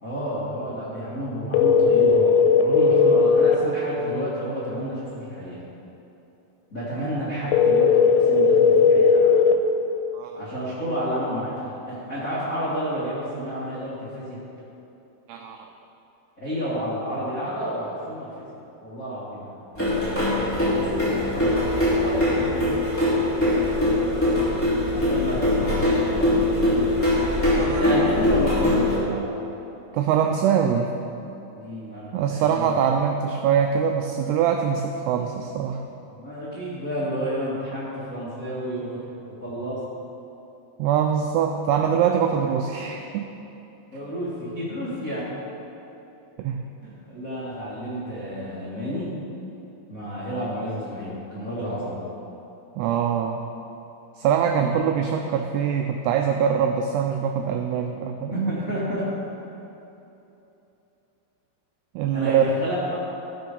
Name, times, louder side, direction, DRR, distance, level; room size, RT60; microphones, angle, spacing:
voice 1, 0.0-2.3 2.6-5.6 6.7-9.4 10.3-14.4 16.4-18.5 18.8-19.6 20.6-22.8 24.9-26.3 27.6-29.3 31.5-32.7 36.1-39.0 39.3-39.8 43.9-45.2 46.8-49.2 49.9-52.0 54.6-54.7 58.2-59.1 62.1-62.9, equal, 65° left, -10 dB, 0.8 m, -30 dB
sound 1, 1.5-3.5 7.5-9.5, left 6 dB, 90° left, 3.1 m, -17 dB
voice 2, 10.1-10.5 15.3-15.7 27.6-27.8 29.9-30.9 32.1-35.8 40.8-43.3 46.4-46.6 52.8-53.4 54.2-58.5 62.0-62.4, right 8 dB, 85° right, 4 dB, 2.3 m, -23 dB
sound 2, 19.8-29.0, left 1 dB, 10° left, 0.5 m, -22 dB
15.0 x 6.1 x 5.3 m, 2.9 s
omnidirectional pair, 5.3 m